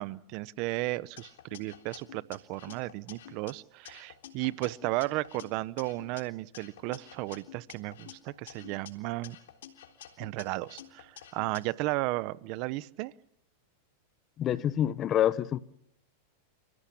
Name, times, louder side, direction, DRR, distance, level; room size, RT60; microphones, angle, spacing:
voice 1, 0.0-9.4 10.2-13.1, right 20 dB, 45° right, 0.9 m, -34 dB
sound 1, 1.2-3.5 3.9-6.2 6.5-8.9 9.2-11.6, left 11 dB, 80° left, 3.5 m, -50 dB
voice 2, 14.4-15.6, left 11 dB, 30° left, 1.0 m, -27 dB
29.5 x 16.5 x 8.6 m
supercardioid pair, 140°, 0 cm